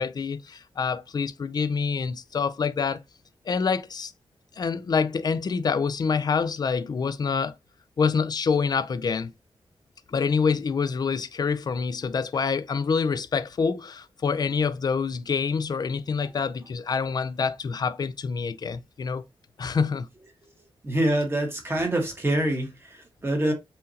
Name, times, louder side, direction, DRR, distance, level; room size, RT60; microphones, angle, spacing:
voice 1, 0.0-3.0 3.5-4.1 4.6-7.5 8.0-9.3 10.1-19.2 19.6-20.1, left 5 dB, 45° left, 0.4 m, -26 dB
voice 2, 20.8-23.5, right 1 dB, 25° right, 1.4 m, -25 dB
5.6 x 2.6 x 2.8 m
wide cardioid pair, 115°, 9 cm